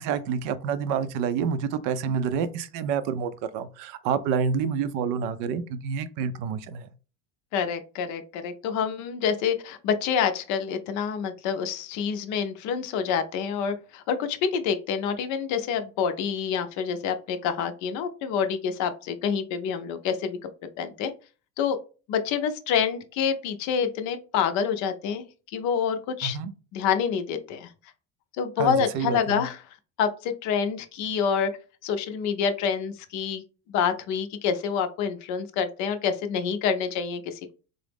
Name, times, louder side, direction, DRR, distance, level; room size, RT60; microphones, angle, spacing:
voice 1, 0.0-6.9 26.2-26.5 28.6-29.4, right 6 dB, 60° right, 0.5 m, -28 dB
voice 2, 7.5-20.5 20.8-21.1 21.6-21.8 22.1-25.2 25.5-26.4 26.7-27.7 28.3-29.6 30.0-31.5 31.8-33.4 33.7-37.5, left 7 dB, 50° left, 0.5 m, -27 dB
3.7 x 2.0 x 3.4 m
supercardioid pair, 135°, 36 cm